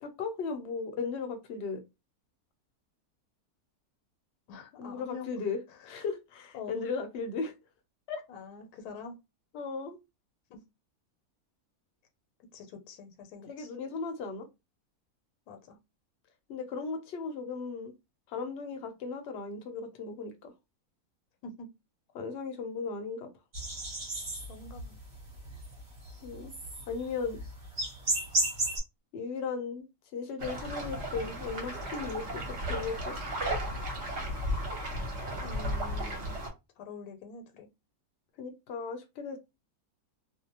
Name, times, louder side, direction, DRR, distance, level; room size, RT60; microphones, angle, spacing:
voice 1, 0.0-1.8 4.8-5.6 5.8-7.5 8.1-8.2 9.5-10.0 13.5-14.5 16.5-17.9 18.3-20.5 22.1-23.3 26.2-26.5 26.9-27.4 29.1-29.9 30.1-33.2 38.4-39.4, left 4 dB, 60° left, 0.7 m, -36 dB
voice 2, 4.5-5.3 6.5-6.7 8.3-9.2 10.5-10.6 12.5-13.7 15.5-15.8 21.4-21.7 24.5-25.0 35.4-36.4 36.8-37.7, left 4 dB, 80° left, 1.1 m, -45 dB
sound 1, 23.5-28.8, right 2 dB, 35° right, 1.0 m, -33 dB
sound 2, 30.4-36.5, equal, 50° right, 1.1 m, -34 dB
2.6 x 2.0 x 2.8 m
omnidirectional pair, 1.6 m